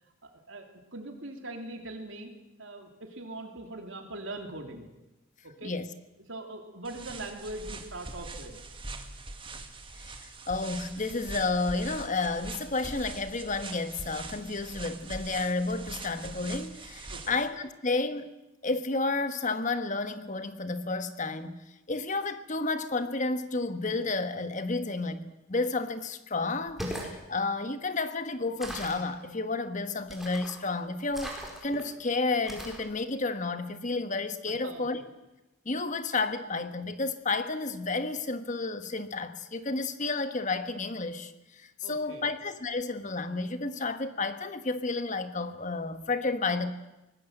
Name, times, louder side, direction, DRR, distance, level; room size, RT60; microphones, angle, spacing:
voice 1, 0.2-2.3 2.6-4.9 5.4-5.7 6.3-8.6 17.1-17.3 34.4-34.8 41.8-42.3, right 2 dB, 65° right, 4 dB, 3.0 m, -41 dB
sound 1, 6.8-17.5, right 3 dB, 25° right, 1.9 m, -43 dB
voice 2, 10.0-18.3 18.6-21.6 21.9-35.0 35.6-46.7, left 3 dB, 35° left, 10 dB, 1.3 m, -31 dB
sound 2, 26.6-27.1 28.6-29.1 30.1-30.6 31.1-31.8 32.5-32.9, equal, ahead, 4.5 m, -39 dB
24.0 x 19.0 x 8.0 m, 0.98 s
head